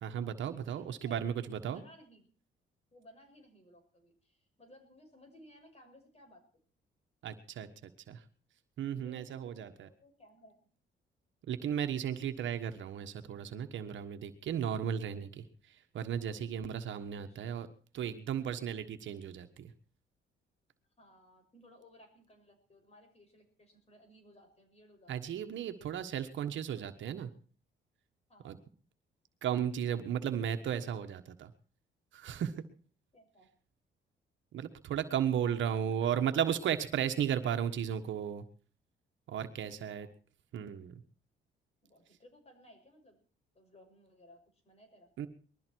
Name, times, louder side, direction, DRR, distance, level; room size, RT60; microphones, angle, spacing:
voice 1, 0.0-1.8 7.2-8.2 8.8-9.9 11.5-17.7 17.9-19.7 25.1-27.3 28.4-28.6 29.4-31.5 32.1-32.6 34.5-38.4 39.3-40.1 40.5-40.9 45.2-45.3, right 9 dB, 70° right, 8 dB, 1.5 m, -35 dB
voice 2, 0.6-2.3 2.9-6.6 8.8-10.7 17.3-17.4 21.0-25.3 28.3-28.7 33.1-33.5 35.5-36.6 39.7-40.1 41.8-43.2 43.5-45.1, left 1 dB, 30° left, 4 dB, 6.7 m, -60 dB
21.0 x 13.0 x 4.7 m, 0.43 s
cardioid pair, 90°, 20 cm